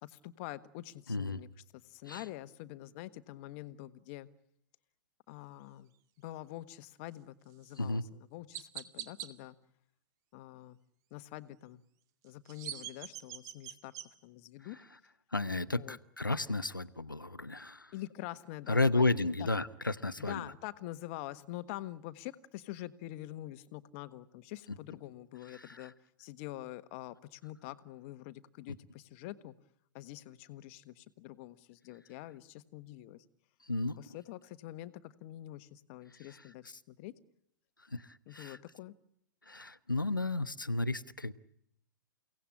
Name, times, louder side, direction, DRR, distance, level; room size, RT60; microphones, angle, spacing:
voice 1, 0.0-4.3 5.3-5.9 6.2-9.6 10.3-10.8 11.1-11.8 12.2-13.9 14.2-14.8 15.7-16.0 17.9-19.5 20.2-25.9 26.2-29.5 29.9-33.2 34.0-37.1 38.3-38.9, left 15 dB, 40° left, 1.4 m, -46 dB
voice 2, 1.1-1.4 2.1-2.2 7.8-8.0 15.3-17.9 18.7-20.4 33.7-33.9 37.9-38.0 38.3-38.6 39.5-41.3, left 2 dB, 90° left, 1.0 m, -32 dB
Chirp tweet, 7.6-7.8 8.5-9.3 12.2-14.1, right 11 dB, 35° right, 2.2 m, -43 dB
30.0 x 18.0 x 8.7 m
figure-of-eight pair, 105°, 11 cm